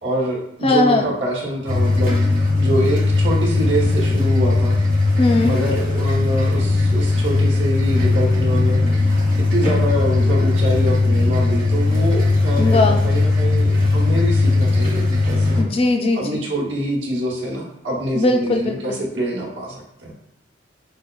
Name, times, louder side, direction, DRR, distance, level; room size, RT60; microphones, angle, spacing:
voice 1, 0.0-4.8 5.4-15.7 16.1-20.1, right 1 dB, 75° right, -2 dB, 1.0 m, -25 dB
voice 2, 0.6-1.1 5.2-5.6 12.6-13.0 15.6-16.4 18.1-19.0, left 2 dB, 30° left, 4 dB, 0.3 m, -19 dB
sound 1, 1.7-15.6, left 3 dB, 50° right, 0.9 m, -18 dB
4.9 x 2.2 x 2.3 m, 0.78 s
head